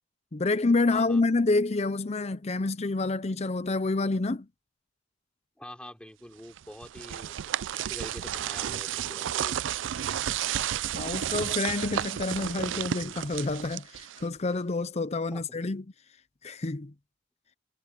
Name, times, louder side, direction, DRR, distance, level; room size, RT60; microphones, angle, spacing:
voice 1, 0.3-4.5 10.9-15.8 16.4-16.9, left 3 dB, 35° left, 0.6 m, -28 dB
voice 2, 0.9-1.2 5.6-7.4 7.7-9.8 15.3-15.4, equal, 5° left, 3.5 m, -45 dB
sound 1, 6.6-14.4, right 10 dB, 85° right, 0.4 m, -32 dB
head